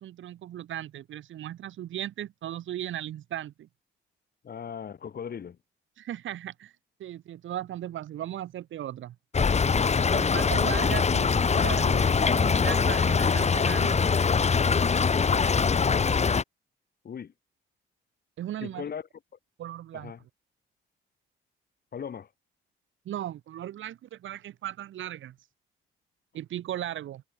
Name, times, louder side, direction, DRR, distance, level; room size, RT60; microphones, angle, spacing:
voice 1, 0.0-3.7 6.0-6.7 7.0-9.2 10.1-14.0 18.4-18.8 19.6-20.1 23.1-25.4 26.3-27.2, right 12 dB, 75° right, 5.8 m, -37 dB
voice 2, 4.4-5.6 17.0-17.3 18.6-19.0 19.9-20.2 21.9-22.3, left 7 dB, 50° left, 4.5 m, -38 dB
Stream / Trickle dribble, 9.3-16.4, left 5 dB, 35° left, 1.8 m, -23 dB
cardioid pair, 90°, 20 cm